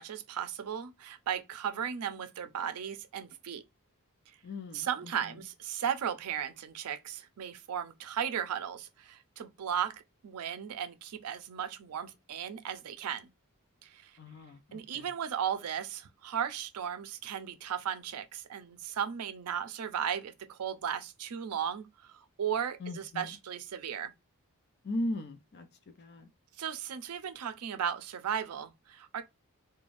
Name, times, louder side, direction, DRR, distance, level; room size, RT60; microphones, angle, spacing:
voice 1, 0.0-3.6 4.7-9.9 10.2-13.3 13.8-14.1 14.7-24.1 26.6-29.2, right 8 dB, 80° right, 0.4 m, -36 dB
voice 2, 4.4-5.3 14.2-15.1 22.8-23.4 24.8-25.7 26.0-26.3, left 1 dB, 50° left, 0.5 m, -38 dB
2.5 x 2.2 x 3.1 m
head